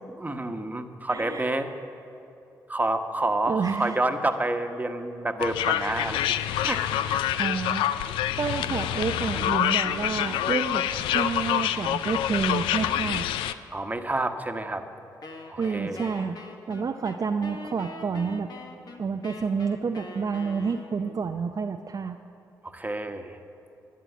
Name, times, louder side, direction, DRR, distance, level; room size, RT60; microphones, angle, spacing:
voice 1, 0.2-1.7 2.7-6.4 6.6-7.2 13.7-14.8 15.5-16.1 22.6-23.4, right 2 dB, 20° right, 6 dB, 1.2 m, -29 dB
voice 2, 1.1-1.5 3.5-4.0 6.6-7.0 7.4-8.1 8.4-13.2 15.6-16.4 16.7-18.5 19.0-22.2, right 5 dB, 45° right, 5 dB, 0.6 m, -29 dB
sound 1, 5.4-13.5, left 11 dB, 80° left, 0.4 m, -26 dB
Wind instrument woodwind instrument, 15.2-21.2, left 2 dB, 55° left, 1.4 m, -43 dB
11.5 x 11.0 x 7.3 m, 2.7 s
hypercardioid pair, 45°, 8 cm